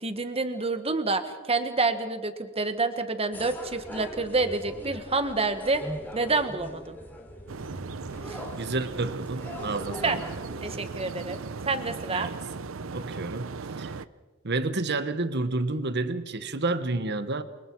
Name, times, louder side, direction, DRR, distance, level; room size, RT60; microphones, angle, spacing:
voice 1, 0.0-5.8 6.1-7.0 8.3-8.4 10.0-10.2 10.6-12.3, right 3 dB, 30° right, 9 dB, 1.6 m, -28 dB
sound 1, 3.3-10.8, left 1 dB, 10° left, 3.2 m, -41 dB
sound 2, 7.5-14.1, right 4 dB, 85° right, 0.7 m, -37 dB
voice 2, 8.6-10.2 12.1-12.4 12.9-13.9 14.4-17.4, right 2 dB, 55° right, 11 dB, 1.3 m, -30 dB
29.0 x 24.0 x 4.7 m, 1.3 s
head